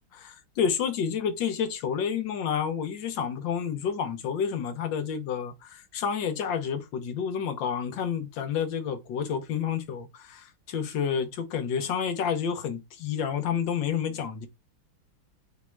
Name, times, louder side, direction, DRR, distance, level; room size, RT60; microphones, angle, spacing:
voice 1, 0.1-14.5, left 7 dB, 70° left, 1.5 m, -29 dB
6.2 x 2.8 x 2.2 m
omnidirectional pair, 2.3 m